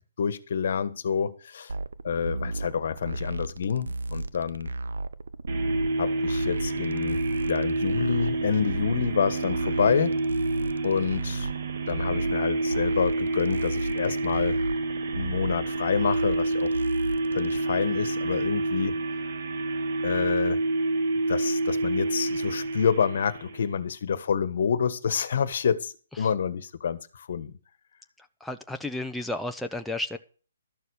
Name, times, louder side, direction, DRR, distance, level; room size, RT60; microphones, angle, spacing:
voice 1, 0.2-1.7 2.0-4.7 6.0-10.1 10.8-11.5 11.9-14.6 15.2-16.7 17.3-19.2 20.0-20.6 21.3-27.5, left 7 dB, 60° left, 1.3 m, -28 dB
sound 1, 1.7-17.6, right 2 dB, 85° right, 0.9 m, -35 dB
sound 2, 5.5-23.7, right 2 dB, 55° right, 2.0 m, -28 dB
voice 2, 28.2-30.2, left 1 dB, ahead, 0.7 m, -33 dB
13.0 x 6.9 x 6.5 m
hypercardioid pair, 150°, 0 cm